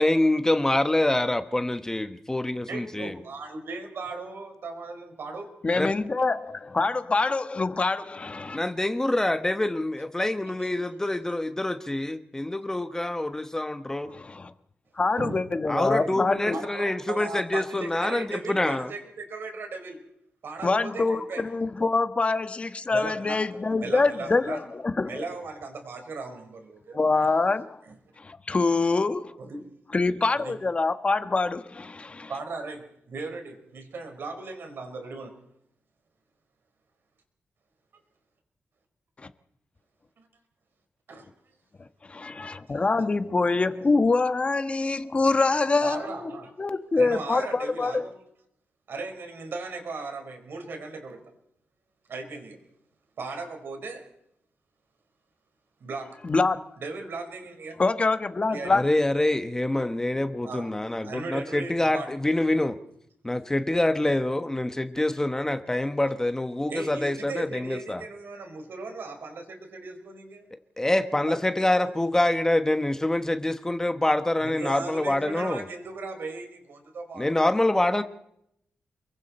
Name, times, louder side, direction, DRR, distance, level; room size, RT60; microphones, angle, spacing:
voice 1, 0.0-3.1 5.7-5.9 8.5-14.1 15.7-18.9 58.7-62.8 63.2-68.0 70.8-75.7 77.2-78.0, left 1 dB, 15° left, 1.2 m, -26 dB
voice 2, 2.7-5.5 10.6-10.7 15.2-15.4 15.7-16.2 16.5-20.0 20.4-21.4 22.9-23.4 23.8-24.6 25.1-27.3 27.9-28.0 29.4-29.6 30.3-30.5 32.3-35.3 41.1-41.2 42.7-43.0 45.8-46.5 46.9-48.1 48.9-51.2 52.1-52.6 53.2-54.1 55.8-56.1 56.8-57.8 58.5-58.7 60.4-60.7 61.0-62.1 66.7-70.4 71.2-71.7 74.4-77.5, right 3 dB, 65° right, 5.0 m, -37 dB
voice 3, 5.6-8.6 14.1-14.5 15.0-16.6 20.6-25.2 26.9-27.8 28.2-29.3 29.9-32.3 42.1-48.1 56.2-56.6 57.8-58.8, left 3 dB, 30° left, 1.4 m, -25 dB
28.5 x 22.5 x 4.4 m
wide cardioid pair, 110°, 4 cm